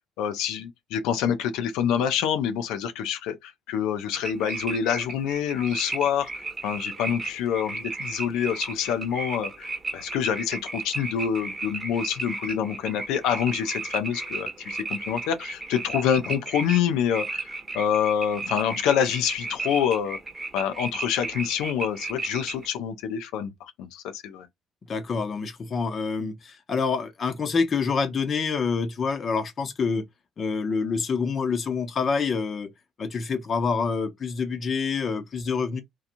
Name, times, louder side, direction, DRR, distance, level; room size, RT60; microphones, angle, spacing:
voice 1, 0.2-6.3 6.6-20.2 20.5-24.5, left 8 dB, 80° left, 0.4 m, -27 dB
sound 1, 4.1-22.7, right 3 dB, 25° right, 0.9 m, -34 dB
voice 2, 24.9-30.0 30.4-32.7 33.0-35.8, left 5 dB, 45° left, 0.7 m, -27 dB
2.9 x 2.3 x 2.5 m
supercardioid pair, 65°, 0 cm